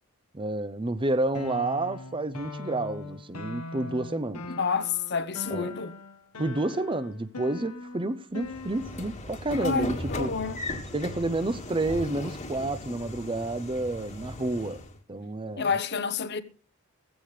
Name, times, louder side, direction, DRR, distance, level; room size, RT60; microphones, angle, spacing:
voice 1, 0.3-4.5 5.5-5.7 6.4-10.3 10.9-14.8 15.1-15.7, right 2 dB, 25° right, 0.7 m, -30 dB
sound 1, 1.3-9.2, left 2 dB, 90° left, 1.4 m, -41 dB
voice 2, 4.6-5.9 9.6-10.6 15.6-16.4, left 5 dB, 50° left, 0.9 m, -29 dB
Train / Sliding door, 8.4-15.0, left 1 dB, 30° left, 1.7 m, -38 dB
16.0 x 15.0 x 3.3 m
head